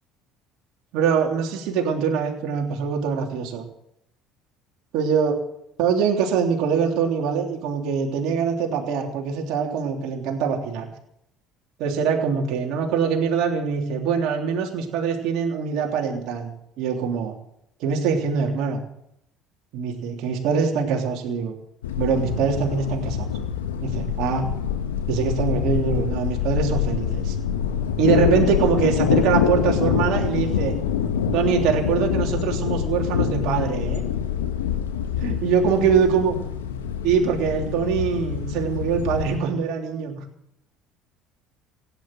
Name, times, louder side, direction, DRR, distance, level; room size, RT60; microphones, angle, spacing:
voice 1, 0.9-3.6 4.9-5.3 5.8-10.9 11.8-17.3 17.8-18.8 19.7-21.5 22.0-23.3 23.8-24.5 25.1-27.4 28.0-30.7 31.3-34.0 35.2-36.4 37.0-40.2, right 6 dB, 65° right, 1 dB, 3.3 m, -23 dB
sound 1, 21.8-39.4, left 8 dB, 85° left, 1.5 m, -25 dB
16.5 x 10.0 x 7.7 m, 0.78 s
hypercardioid pair, 65°, 0 cm